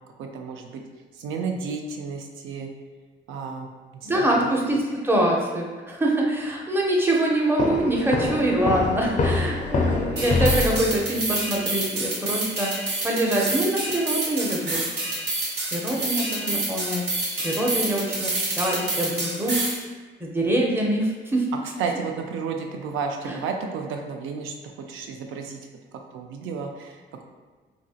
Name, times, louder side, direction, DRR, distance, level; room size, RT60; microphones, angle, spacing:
voice 1, 0.2-0.8 1.1-2.7 3.3-4.4 21.8-24.6 24.9-25.6 26.1-27.2, right 5 dB, 85° right, 3 dB, 0.4 m, -32 dB
voice 2, 4.0-12.7 13.0-14.8 15.7-17.0 17.4-19.6 20.2-21.5 23.2-23.4, right 1 dB, 10° right, -2 dB, 0.6 m, -24 dB
sound 1, 7.6-11.3, left 3 dB, 40° left, 0.4 m, -25 dB
sound 2, 10.2-19.8, right 2 dB, 60° right, 0.9 m, -28 dB
2.9 x 2.6 x 2.3 m, 1.4 s
cardioid pair, 90°, 20 cm